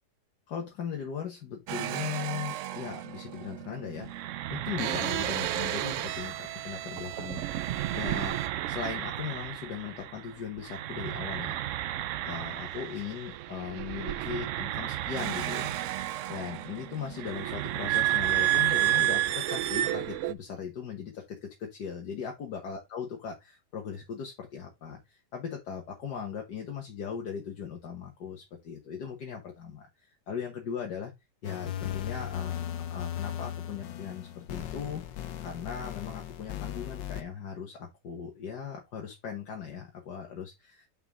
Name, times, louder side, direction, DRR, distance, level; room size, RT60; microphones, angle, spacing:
voice 1, 0.5-4.1 4.5-7.7 7.9-8.4 8.7-11.5 12.2-15.8 16.3-31.1 31.4-32.6 32.9-35.0 35.4-40.9, left 7 dB, 70° left, 1.9 m, -38 dB
sound 1, 1.7-10.3 10.6-20.3, right 13 dB, 80° right, 0.6 m, -32 dB
sound 2, 31.4-37.2, left 10 dB, 85° left, 1.5 m, -37 dB
6.0 x 5.6 x 3.5 m
omnidirectional pair, 1.9 m